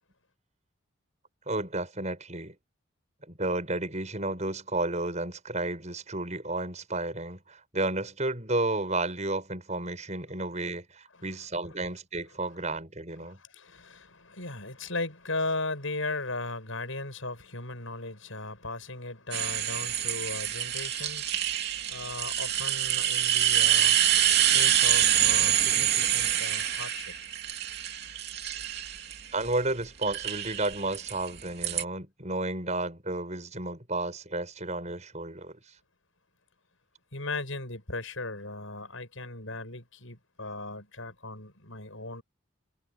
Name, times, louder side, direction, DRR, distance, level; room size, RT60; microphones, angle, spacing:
voice 1, 1.5-2.6 3.3-13.4 29.3-35.6, right 2 dB, 35° right, 7.2 m, -32 dB
voice 2, 13.2-24.0 24.5-27.1 37.1-42.2, left 2 dB, 70° left, 7.5 m, -37 dB
sound 1, 19.3-29.5 30.0-31.8, right 11 dB, 50° right, 3.1 m, -26 dB
head